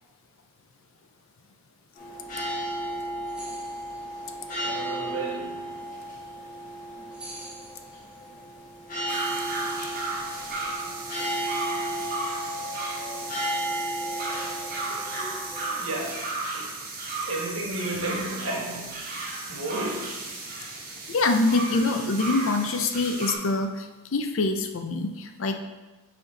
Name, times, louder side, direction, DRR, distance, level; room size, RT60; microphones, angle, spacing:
sound 1, 2.0-15.7, right 1 dB, 40° left, 1.6 m, -34 dB
sound 2, 3.3-4.1 7.1-8.3, right 1 dB, 5° right, 1.4 m, -45 dB
voice 1, 4.6-5.7 14.9-16.8 17.0-19.1 19.5-20.3, right 2 dB, 75° right, -1 dB, 1.4 m, -34 dB
sound 3, 9.1-23.4, right 3 dB, 40° right, 1.1 m, -34 dB
voice 2, 21.1-25.5, left 3 dB, 70° left, 6 dB, 0.6 m, -25 dB
6.4 x 4.3 x 4.0 m, 1.2 s
head